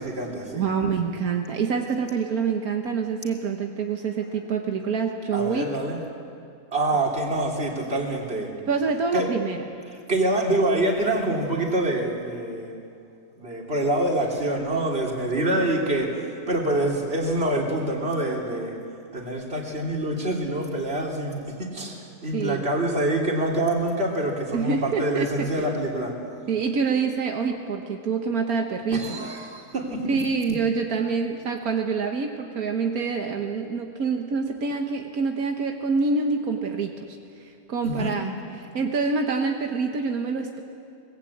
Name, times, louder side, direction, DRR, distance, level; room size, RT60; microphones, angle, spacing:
voice 1, 0.0-0.7 5.3-6.0 6.7-8.5 9.1-9.3 9.9-12.7 13.4-18.7 19.1-26.1 28.9-30.0 37.8-38.1, right 1 dB, 45° right, -1 dB, 3.4 m, -26 dB
voice 2, 0.5-5.7 8.7-9.6 22.3-22.6 24.5-25.8 26.5-29.3 30.1-40.6, right 5 dB, 85° right, 3 dB, 1.8 m, -26 dB
24.0 x 20.0 x 8.6 m, 2.4 s
omnidirectional pair, 1.5 m